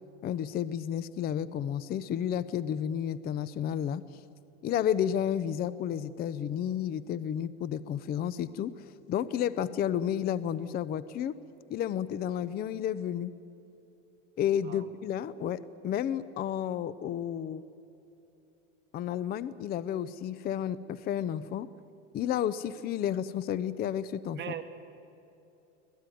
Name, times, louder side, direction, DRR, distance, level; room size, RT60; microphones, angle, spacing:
voice 1, 0.2-4.0 4.6-11.3 11.7-13.3 14.4-17.6 18.9-21.7 22.1-24.4, left 9 dB, 25° left, 17 dB, 0.5 m, -31 dB
voice 2, 24.3-24.7, right 9 dB, 30° right, 5 dB, 2.0 m, -39 dB
24.5 x 18.5 x 9.2 m, 2.9 s
supercardioid pair, 140°, 36 cm